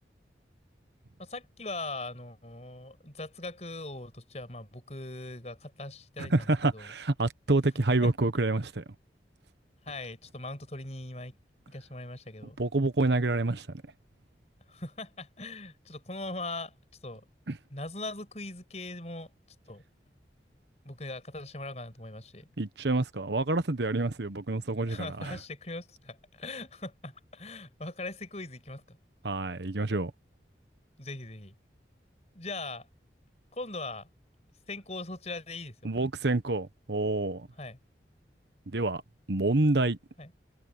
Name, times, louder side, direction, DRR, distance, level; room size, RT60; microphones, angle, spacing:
voice 1, 1.2-6.5 6.7-6.9 7.7-8.1 9.8-11.4 11.7-12.6 14.7-16.7 17.0-17.2 17.7-19.3 19.7-19.8 20.8-22.5 24.9-29.0 31.0-31.6 32.3-32.9 33.5-34.1 34.7-35.9 37.6-37.8 40.2-40.3, left 2 dB, 35° left, 5.9 m, -40 dB
voice 2, 6.2-8.8 12.6-13.7 17.5-17.6 22.6-25.3 29.2-30.1 35.8-37.5 38.7-39.0 39.3-40.0, right 2 dB, 70° right, 1.1 m, -27 dB
head